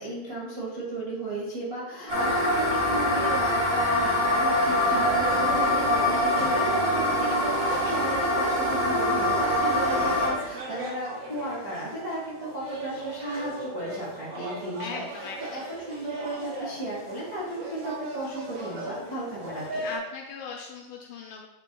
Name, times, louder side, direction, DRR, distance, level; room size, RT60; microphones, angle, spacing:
voice 1, 0.0-19.9, right 1 dB, 45° right, -8 dB, 1.2 m, -34 dB
sound 1, 2.1-10.3, left 1 dB, 25° right, 1.8 m, -24 dB
sound 2, 4.6-20.0, right 1 dB, 85° right, 4.1 m, -39 dB
voice 2, 14.8-15.6 19.8-21.5, left 4 dB, 80° left, 1 dB, 1.9 m, -38 dB
8.0 x 7.0 x 2.3 m, 1.1 s
omnidirectional pair, 4.2 m